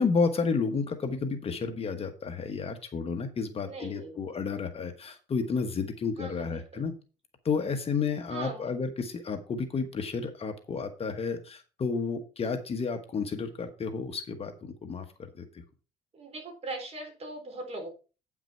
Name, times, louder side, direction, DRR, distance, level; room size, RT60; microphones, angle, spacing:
voice 1, 0.0-6.9 7.4-15.1 15.4-15.5, left 5 dB, 35° left, 6 dB, 1.3 m, -31 dB
voice 2, 3.6-4.3 6.2-6.9 8.3-8.7 16.1-17.9, right 2 dB, 40° right, 3 dB, 3.9 m, -40 dB
9.1 x 6.0 x 4.4 m, 0.34 s
cardioid pair, 110°, 17 cm